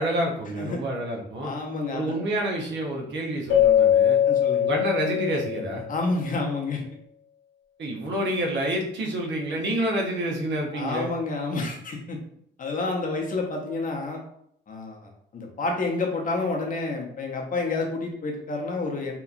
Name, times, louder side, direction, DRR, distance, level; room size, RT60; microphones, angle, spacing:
voice 1, 0.0-1.5 1.9-4.2 4.6-5.8 7.8-11.1, right 1 dB, 65° right, 0 dB, 0.8 m, -28 dB
voice 2, 1.4-2.1 4.3-4.7 5.9-6.8 10.7-12.2 12.6-14.2 14.7-15.0 15.3-19.1, left 3 dB, 45° left, 0 dB, 0.7 m, -29 dB
Keyboard (musical), 3.5-5.9, left 10 dB, 75° left, 0.8 m, -21 dB
2.8 x 2.3 x 2.5 m, 0.71 s
cardioid pair, 90°, 20 cm